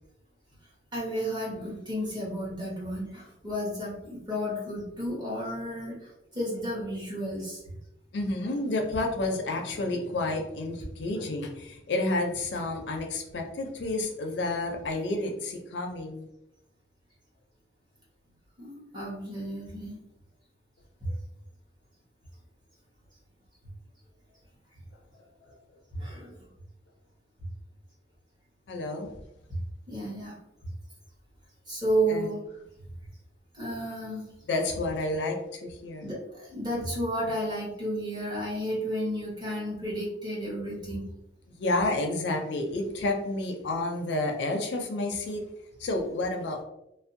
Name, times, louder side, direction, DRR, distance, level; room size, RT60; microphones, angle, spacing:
voice 1, 0.9-7.8 18.6-20.0 25.9-26.5 29.9-30.3 31.7-32.4 33.5-34.3 36.0-41.1, right 1 dB, 25° right, -5 dB, 0.9 m, -32 dB
voice 2, 8.1-16.3 28.7-29.1 32.1-32.3 34.5-36.1 41.6-45.4 45.8-46.6, left 2 dB, 65° left, 3 dB, 0.4 m, -30 dB
2.5 x 2.0 x 2.5 m, 0.85 s
head